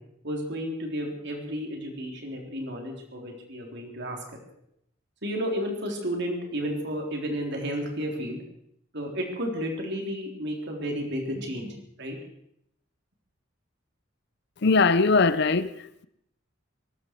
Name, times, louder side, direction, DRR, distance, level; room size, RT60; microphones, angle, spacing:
voice 1, 0.2-4.2 5.2-8.4 8.9-12.2, equal, 60° right, 3.7 m, -32 dB
voice 2, 14.6-16.1, left 4 dB, 60° left, 0.7 m, -21 dB
23.0 x 12.5 x 4.7 m
head